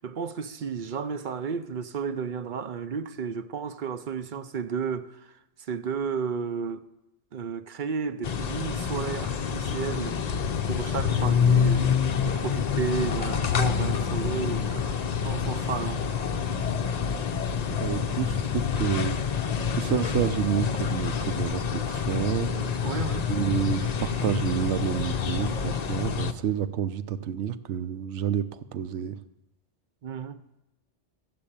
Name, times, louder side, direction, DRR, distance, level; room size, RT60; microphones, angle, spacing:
voice 1, 0.0-5.4 5.7-6.9 7.3-10.2 10.7-11.9 12.2-16.0 22.5-23.4 30.0-30.4, right 6 dB, 55° right, 0.6 m, -33 dB
sound 1, 8.2-26.3, left 7 dB, 45° left, 0.6 m, -27 dB
voice 2, 17.7-22.5 23.3-28.4 28.7-29.2, right 9 dB, 75° right, 1.0 m, -29 dB
14.0 x 7.9 x 8.6 m
omnidirectional pair, 1.2 m